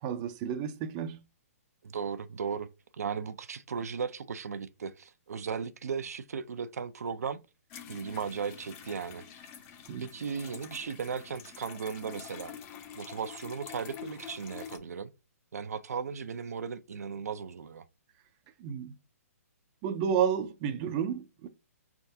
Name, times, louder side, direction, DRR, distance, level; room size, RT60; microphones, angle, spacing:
voice 1, 0.0-1.2 9.9-10.1 18.6-18.9 19.8-21.5, right 8 dB, 25° right, 0.5 m, -31 dB
voice 2, 1.8-2.7 3.0-7.4 7.8-9.3 10.0-12.5 13.0-15.1 15.5-17.8, right 6 dB, 80° right, 0.6 m, -36 dB
sound 1, 7.7-14.8, left 8 dB, 25° left, 0.6 m, -47 dB
4.5 x 3.5 x 2.7 m
hypercardioid pair, 155°, 8 cm